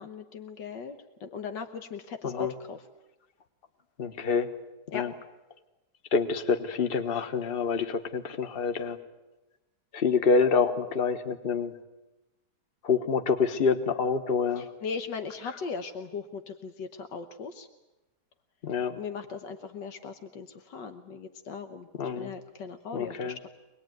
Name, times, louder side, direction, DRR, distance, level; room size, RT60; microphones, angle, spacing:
voice 1, 0.0-2.9 4.9-5.1 14.6-17.7 19.0-21.9 22.2-23.5, left 5 dB, 85° left, 8 dB, 1.8 m, -38 dB
voice 2, 4.0-4.5 4.9-5.1 6.1-9.0 9.9-11.7 12.8-14.6 18.6-19.0 22.0-22.3 22.9-23.4, left 5 dB, 35° left, 9 dB, 1.4 m, -27 dB
24.5 x 20.0 x 9.3 m, 1.0 s
omnidirectional pair, 1.9 m